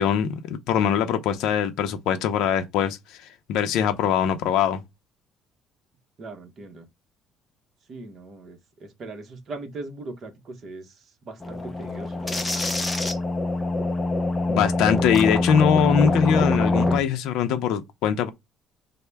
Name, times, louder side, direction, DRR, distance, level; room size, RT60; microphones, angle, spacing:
voice 1, 0.0-3.2 3.5-4.8 14.5-18.3, left 8 dB, 70° left, 0.5 m, -22 dB
voice 2, 6.2-6.9 7.9-12.7, right 2 dB, 35° right, 0.8 m, -40 dB
sound 1, 11.4-17.0, left 2 dB, 10° left, 0.5 m, -24 dB
5.4 x 2.1 x 3.3 m
cardioid pair, 170°, 0 cm